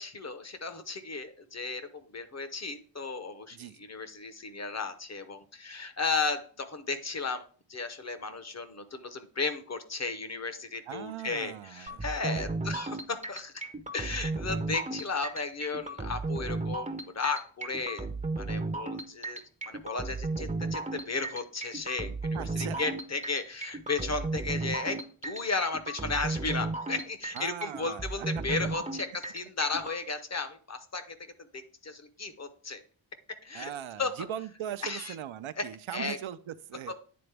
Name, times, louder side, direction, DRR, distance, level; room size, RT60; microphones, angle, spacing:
voice 1, 0.0-7.4 7.7-13.6 13.9-18.1 18.4-19.4 19.7-31.1 31.5-32.8 33.4-33.7 34.0-34.1 34.8-35.1 35.6-35.7 35.9-36.2 36.9-37.0, left 4 dB, 35° left, 9 dB, 0.7 m, -34 dB
voice 2, 10.9-12.8 22.3-22.9 27.3-28.3 33.5-36.9, right 10 dB, 75° right, 11 dB, 0.6 m, -40 dB
sound 1, 11.9-30.0, right 3 dB, 15° right, 0.6 m, -35 dB
9.5 x 3.9 x 3.3 m, 0.42 s
wide cardioid pair, 130°, 48 cm